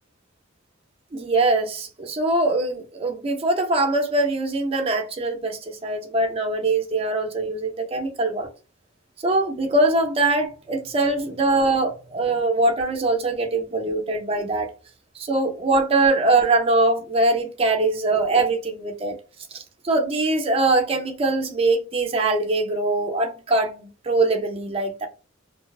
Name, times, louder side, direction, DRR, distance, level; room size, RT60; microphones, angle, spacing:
voice 1, 1.1-8.5 9.2-14.7 15.2-19.2 19.5-25.1, right 2 dB, 30° right, 0.4 m, -22 dB
2.6 x 2.1 x 2.3 m
head